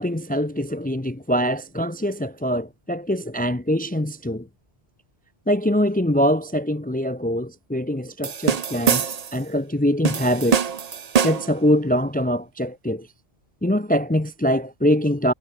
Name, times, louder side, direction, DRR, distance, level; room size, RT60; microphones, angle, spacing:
voice 1, 0.0-4.5 5.5-9.1 9.3-10.6 11.2-13.1 13.6-15.3, equal, 10° left, 0.9 m, -23 dB
sound 1, 8.2-9.4 10.0-11.6, right 6 dB, 40° right, 0.7 m, -24 dB
omnidirectional pair, 1.1 m